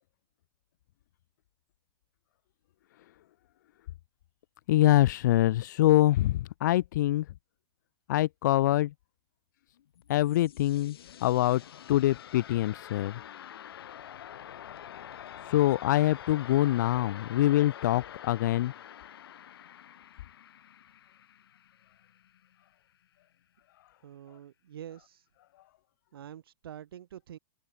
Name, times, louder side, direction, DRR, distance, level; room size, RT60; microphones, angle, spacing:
voice 1, 4.7-7.2 8.1-8.9 10.1-11.0 11.2-11.6 11.9-13.2 15.4-18.7, left 14 dB, 45° left, 1.3 m, -24 dB
sound 1, 9.8-22.6, left 10 dB, 70° left, 6.0 m, -47 dB
voice 2, 24.0-25.3 26.1-27.4, right 10 dB, 65° right, 6.6 m, -46 dB
supercardioid pair, 170°, 13 cm